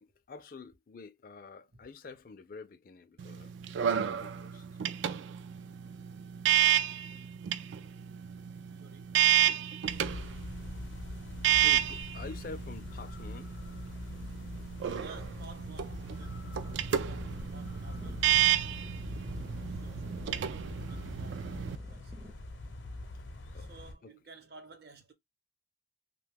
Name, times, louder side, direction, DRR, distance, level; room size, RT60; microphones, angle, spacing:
voice 1, 0.0-4.7 9.8-9.9 11.6-13.6 23.1-23.2 23.5-23.7 24.0-24.1, left 4 dB, 50° left, 0.4 m, -48 dB
sound 1, 3.2-21.8, right 11 dB, 75° right, 0.3 m, -31 dB
voice 2, 8.8-9.1 15.0-19.0 19.3-22.1 23.5-25.1, right 3 dB, 55° right, 0.7 m, -55 dB
sound 2, 9.9-23.9, left 2 dB, 80° left, 0.7 m, -43 dB
sound 3, 16.5-22.3, equal, 15° right, 0.5 m, -52 dB
2.8 x 2.2 x 3.3 m
head